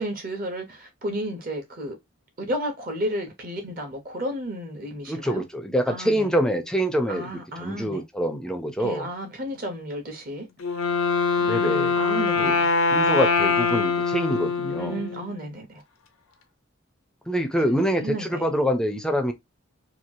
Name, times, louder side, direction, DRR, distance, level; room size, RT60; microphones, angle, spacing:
voice 1, 0.0-1.9 2.4-5.4 5.9-6.3 7.1-8.0 8.8-10.5 12.0-12.7 14.8-15.8 17.7-18.5, right 1 dB, 45° right, 0.8 m, -32 dB
voice 2, 5.1-9.1 11.4-12.0 12.4-12.6 12.9-15.0 17.3-19.3, equal, 5° left, 0.4 m, -25 dB
Wind instrument woodwind instrument, 10.6-15.5, left 4 dB, 90° left, 0.6 m, -23 dB
2.9 x 2.3 x 2.6 m
head